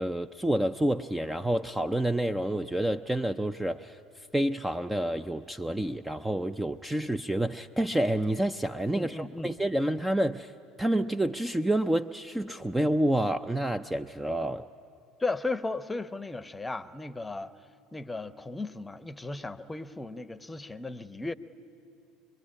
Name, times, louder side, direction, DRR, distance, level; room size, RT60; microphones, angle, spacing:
voice 1, 0.0-4.0 4.3-10.5 10.8-14.7, right 1 dB, 10° right, 10 dB, 0.5 m, -28 dB
voice 2, 8.9-9.5 15.2-17.5 17.9-21.3, left 3 dB, 15° left, 15 dB, 0.9 m, -35 dB
25.0 x 22.5 x 9.8 m, 2.5 s
figure-of-eight pair, 65°, 0 cm